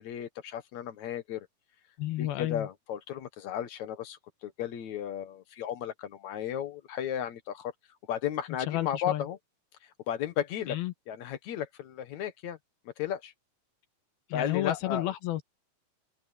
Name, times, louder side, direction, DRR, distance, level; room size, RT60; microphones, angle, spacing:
voice 1, 0.0-1.5 2.2-7.7 8.1-9.4 10.1-10.8 11.1-12.6 12.9-13.3 14.3-15.1, left 10 dB, 60° left, 2.3 m, -34 dB
voice 2, 2.0-2.7 8.7-9.3 10.7-10.9 14.3-15.4, left 14 dB, 80° left, 3.1 m, -31 dB
omnidirectional pair, 4.2 m